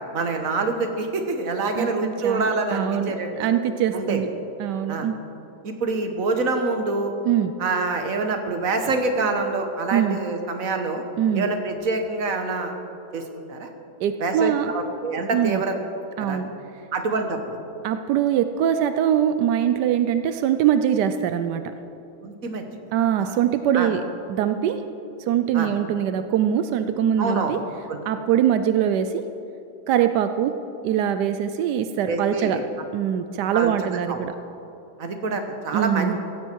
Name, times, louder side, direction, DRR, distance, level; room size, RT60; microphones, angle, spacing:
voice 1, 0.1-3.5 3.9-4.2 4.9-5.1 5.6-7.1 7.6-11.0 11.3-12.7 13.1-13.2 13.5-13.7 14.2-15.8 16.2-16.4 16.9-17.4 22.2-22.6 23.2-23.4 23.7-23.9 25.5-25.7 27.2-27.5 27.9-28.0 32.1-32.6 33.5-33.7 34.1-34.2 35.0-36.2, right 3 dB, 55° right, 5 dB, 1.8 m, -26 dB
voice 2, 1.8-4.3 4.6-5.2 7.2-7.5 9.9-10.2 11.2-11.5 14.0-14.7 15.3-15.6 16.2-16.5 17.8-21.6 22.9-24.0 24.3-24.8 25.3-27.6 28.0-29.2 29.9-30.5 30.8-32.6 32.9-34.3 35.7-36.2, right 9 dB, 90° right, 9 dB, 1.2 m, -23 dB
16.0 x 15.5 x 4.6 m, 2.8 s
omnidirectional pair, 1.7 m